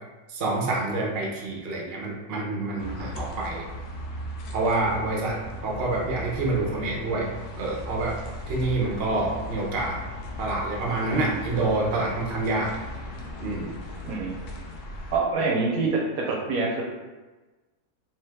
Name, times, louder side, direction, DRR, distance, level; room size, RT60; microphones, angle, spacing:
voice 1, 0.3-3.6 4.5-7.3 7.6-8.2 8.5-10.0 10.4-12.7 13.4-13.7, right 2 dB, 50° right, -2 dB, 0.9 m, -27 dB
sound 1, 2.8-15.2, left 1 dB, 80° left, 1.2 m, -37 dB
voice 2, 14.0-14.4 15.1-16.0 16.3-16.8, right 4 dB, 75° right, -2 dB, 1.1 m, -25 dB
3.3 x 3.2 x 3.4 m, 1.2 s
omnidirectional pair, 1.6 m